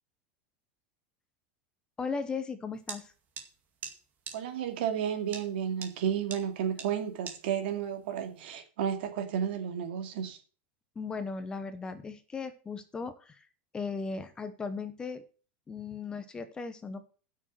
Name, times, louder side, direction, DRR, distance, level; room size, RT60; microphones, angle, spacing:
voice 1, 2.0-3.1 11.0-13.4 13.7-15.2 15.7-17.0, left 4 dB, 15° left, 1.0 m, -37 dB
sound 1, 2.9-3.0 3.4-3.5 3.8-3.9 4.3-4.4 5.3-5.4 5.8-5.9 6.3-6.4 6.8-6.9 7.3-7.4, right 6 dB, 30° right, 2.2 m, -39 dB
voice 2, 4.3-10.4, right 8 dB, 75° right, 2.3 m, -32 dB
8.8 x 6.5 x 7.7 m
supercardioid pair, 155°, 6 cm